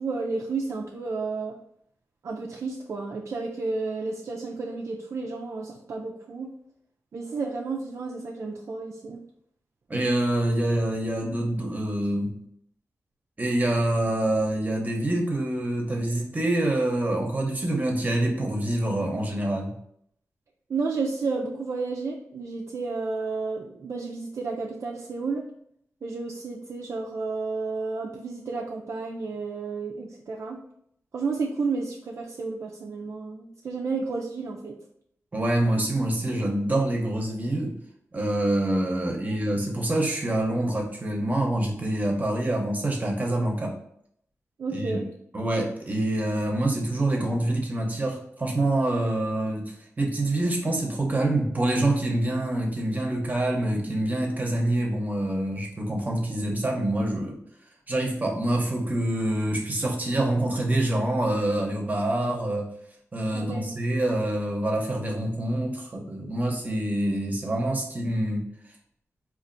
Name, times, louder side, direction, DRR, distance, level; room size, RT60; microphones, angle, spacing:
voice 1, 0.0-1.6 2.2-6.5 7.1-9.2 20.7-25.4 26.0-30.6 31.1-34.7 39.2-39.3 44.6-45.1 63.3-63.7, right 4 dB, 60° right, -1 dB, 0.4 m, -31 dB
voice 2, 9.9-12.3 13.4-19.7 35.3-37.8 38.1-43.8 44.7-45.0 45.3-57.4 57.9-62.7 63.1-68.4, right 1 dB, 30° right, 1 dB, 0.8 m, -26 dB
4.2 x 2.5 x 2.5 m, 0.70 s
wide cardioid pair, 85°, 5 cm